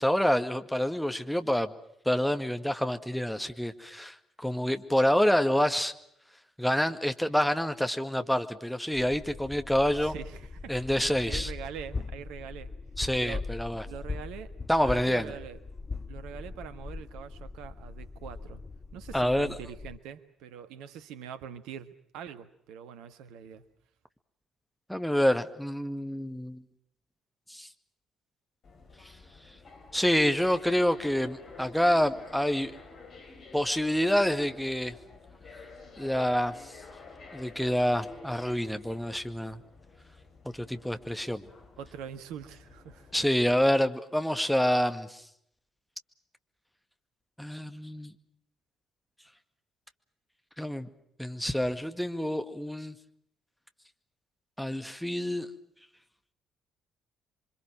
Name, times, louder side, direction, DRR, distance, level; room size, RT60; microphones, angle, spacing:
voice 1, 0.0-1.7 2.1-5.9 6.6-10.1 10.7-11.5 13.0-13.9 14.7-15.3 19.1-19.5 24.9-26.6 27.5-27.7 29.0-29.1 29.9-32.7 33.5-34.9 36.0-36.7 37.3-39.6 40.5-41.4 43.1-45.2 47.4-48.1 50.6-50.9 51.2-53.0 54.6-55.5, equal, ahead, 7 dB, 2.1 m, -27 dB
sound 1, 8.9-20.0, left 4 dB, 30° left, 1.0 m, -40 dB
voice 2, 10.0-10.7 11.3-12.7 13.2-13.4 13.8-14.5 14.8-15.6 16.1-18.6 18.9-23.6 41.8-43.1, right 8 dB, 60° right, 11 dB, 1.5 m, -43 dB
sound 2, 28.6-43.7, left 3 dB, 50° left, 5.5 m, -50 dB
28.5 x 25.0 x 6.2 m, 0.73 s
figure-of-eight pair, 45°, 0 cm